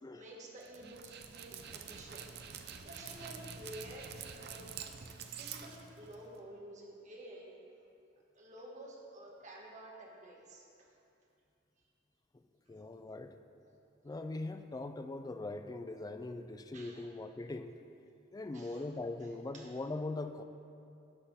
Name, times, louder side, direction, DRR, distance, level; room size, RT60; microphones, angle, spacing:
voice 1, 0.1-2.3 2.8-4.7 5.3-7.5 8.3-10.9 16.7-17.0 18.5-18.9 19.2-19.3 19.5-19.7, right 1 dB, 40° right, -2 dB, 1.4 m, -51 dB
Dog, 0.6-6.4, right 7 dB, 55° right, 0.5 m, -47 dB
voice 2, 12.7-13.3 14.0-17.7 18.3-20.4, left 2 dB, 20° left, 9 dB, 0.3 m, -41 dB
12.5 x 4.3 x 5.5 m, 2.7 s
head